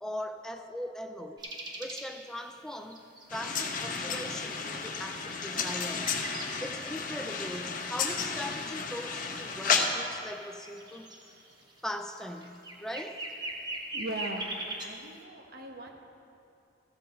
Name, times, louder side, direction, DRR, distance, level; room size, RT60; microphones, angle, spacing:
voice 1, 0.0-1.5 1.8-3.0 3.3-6.1 6.4-11.1 11.8-13.3, equal, 5° left, 5 dB, 0.4 m, -40 dB
sound 1, 1.4-3.6 4.2-4.3 4.7-6.6 6.9-14.9, right 1 dB, 25° right, 1.1 m, -41 dB
sound 2, 3.3-9.9, left 5 dB, 45° left, 0.8 m, -32 dB
voice 2, 13.9-14.5 14.8-15.9, right 2 dB, 55° right, 3 dB, 1.0 m, -39 dB
14.0 x 8.0 x 4.3 m, 2.6 s
head